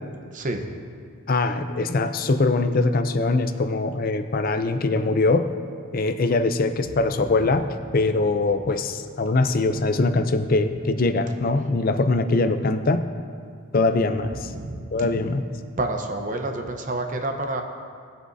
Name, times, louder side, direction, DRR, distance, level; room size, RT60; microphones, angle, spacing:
voice 1, 1.3-5.5 5.9-7.6 7.9-13.0 13.7-14.5 14.9-15.5, left 3 dB, 40° left, 9 dB, 0.5 m, -22 dB
voice 2, 14.4-14.8 15.8-17.6, right 2 dB, 35° right, 4 dB, 0.8 m, -28 dB
18.5 x 8.0 x 2.7 m, 2.2 s
head